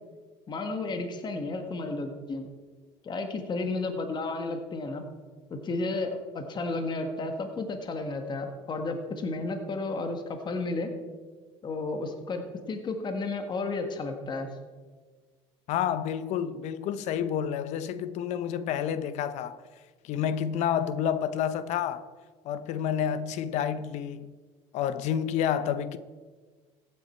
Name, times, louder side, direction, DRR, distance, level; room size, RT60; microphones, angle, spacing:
voice 1, 0.5-2.5 3.0-5.0 5.5-10.9 11.6-12.4 12.7-14.5, left 3 dB, 35° left, 1.6 m, -32 dB
voice 2, 15.7-19.6 20.0-22.1 22.4-24.3 24.7-26.0, left 9 dB, 65° left, 0.7 m, -29 dB
15.0 x 9.3 x 4.4 m
supercardioid pair, 100°, 13 cm